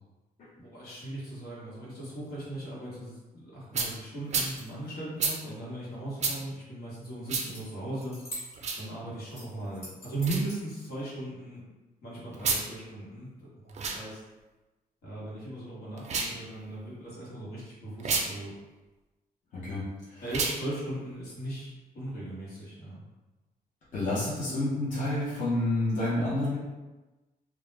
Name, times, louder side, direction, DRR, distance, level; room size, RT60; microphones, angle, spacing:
voice 1, 0.6-8.2 8.8-11.6 12.0-14.2 15.0-18.5 20.2-23.0, right 2 dB, 85° left, -7 dB, 1.1 m, -38 dB
sound 1, 3.7-3.9 4.3-4.5 5.2-5.4 6.2-6.4 7.3-7.5 8.5-8.8 10.2-10.4 12.3-12.6 13.7-14.0 16.0-16.4 18.0-18.3 20.3-20.6, right 4 dB, 45° right, 0.4 m, -29 dB
sound 2, 4.2-4.9 7.5-7.6 7.9-8.9 9.3-10.6, equal, 40° left, 1.2 m, -44 dB
voice 2, 19.5-19.8 20.1-20.2 23.9-26.6, left 1 dB, 55° left, -9 dB, 0.6 m, -29 dB
2.2 x 2.0 x 3.2 m, 1.1 s
wide cardioid pair, 160°, 16 cm